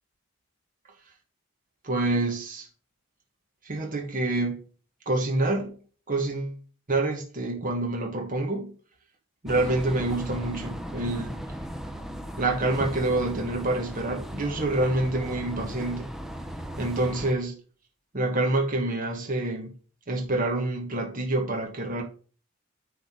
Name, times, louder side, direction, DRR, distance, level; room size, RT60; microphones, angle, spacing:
voice 1, 1.8-2.7 3.6-4.6 5.0-5.8 6.1-6.6 6.9-8.7 9.4-11.4 12.4-16.1 16.8-17.6 18.1-19.7 20.1-22.0, right 2 dB, 40° right, 1.5 m, -27 dB
sound 1, 9.5-17.3, equal, ahead, 0.7 m, -37 dB
9.6 x 3.8 x 6.1 m
head